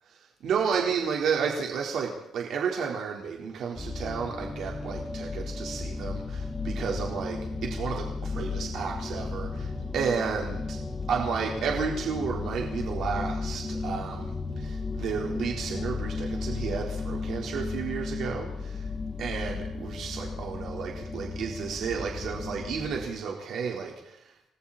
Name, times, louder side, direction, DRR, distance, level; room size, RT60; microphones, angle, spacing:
voice 1, 0.4-10.8 11.1-18.9 19.2-24.3, right 6 dB, 65° right, 0 dB, 4.0 m, -32 dB
sound 1, 3.7-23.1, left 4 dB, 10° left, 3.0 m, -34 dB
29.5 x 21.0 x 4.3 m, 0.79 s
cardioid pair, 165°, 0 cm